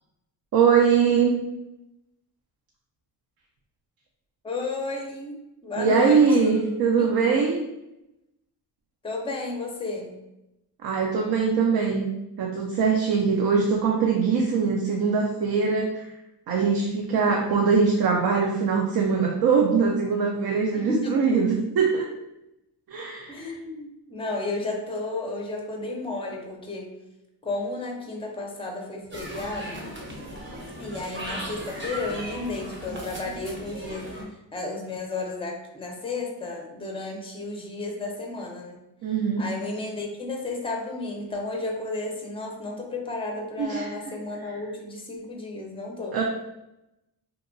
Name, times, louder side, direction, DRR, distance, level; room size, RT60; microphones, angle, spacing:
voice 1, 0.5-1.3 5.8-7.6 10.8-12.1 12.4-16.0 16.5-22.0 22.9-23.5 39.0-39.4 43.6-43.9 46.1-46.2, right 5 dB, 60° right, 0 dB, 0.5 m, -22 dB
voice 2, 4.4-6.6 7.0-7.1 9.0-10.1 17.3-17.4 20.7-21.5 23.3-26.9 27.4-29.9 30.8-34.2 34.5-38.8 39.4-46.2, left 3 dB, 15° left, 1 dB, 0.5 m, -32 dB
sound 1, 29.1-34.2, equal, 30° right, 0.7 m, -37 dB
2.8 x 2.2 x 2.5 m, 0.90 s
cardioid pair, 85°, 42 cm